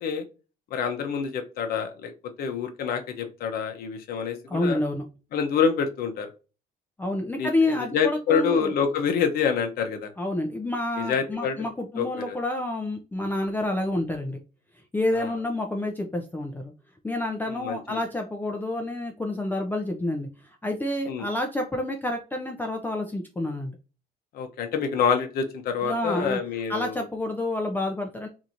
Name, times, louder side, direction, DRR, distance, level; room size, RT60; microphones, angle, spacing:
voice 1, 0.7-2.1 2.4-4.8 5.3-6.3 7.4-10.1 11.0-11.7 12.0-12.4 15.2-15.3 17.5-18.0 21.1-21.3 24.3-27.0, left 6 dB, 65° left, 5 dB, 0.7 m, -27 dB
voice 2, 4.5-5.0 7.0-8.7 10.2-14.4 14.9-16.7 17.0-20.3 20.6-23.7 25.8-26.4 26.7-28.3, left 1 dB, 10° left, 2 dB, 0.5 m, -28 dB
2.9 x 2.6 x 2.4 m, 0.32 s
cardioid pair, 110°, 17 cm